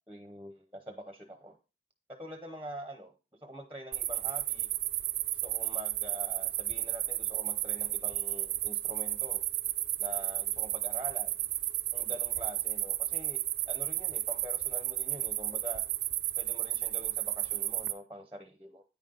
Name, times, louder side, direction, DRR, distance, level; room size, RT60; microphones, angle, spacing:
voice 1, 0.1-1.6 2.1-3.1 3.4-4.7 5.4-9.4 10.0-11.5 11.9-13.4 13.7-15.8 16.4-18.8, equal, 10° right, 8 dB, 0.8 m, -45 dB
sound 1, 3.9-17.9, right 15 dB, 65° right, 0.5 m, -33 dB
9.3 x 5.3 x 3.8 m, 0.30 s
head